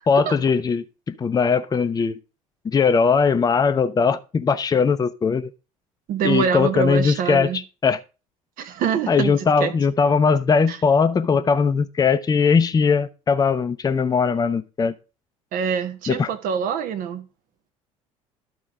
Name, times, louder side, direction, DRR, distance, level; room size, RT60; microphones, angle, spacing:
voice 1, 0.1-2.2 2.6-5.5 6.2-7.5 7.8-8.0 9.1-14.9 16.1-16.3, left 5 dB, 20° left, 0.7 m, -20 dB
voice 2, 6.1-7.6 8.6-9.7 10.7-10.8 15.5-17.2, right 7 dB, 50° right, 1.1 m, -25 dB
12.0 x 4.0 x 4.8 m
figure-of-eight pair, 60°, 18 cm